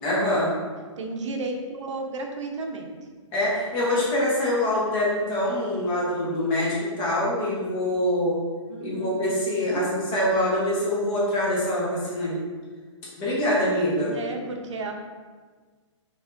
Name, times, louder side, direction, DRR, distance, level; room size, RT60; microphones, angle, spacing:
voice 1, 0.0-0.6 3.3-8.4 8.8-12.4 13.2-14.1, left 1 dB, 20° left, -6 dB, 1.0 m, -24 dB
voice 2, 1.0-2.9 8.7-9.1 9.7-9.9 14.1-14.9, right 3 dB, 70° right, 3 dB, 0.8 m, -33 dB
5.0 x 4.0 x 2.6 m, 1.5 s
hypercardioid pair, 175°, 16 cm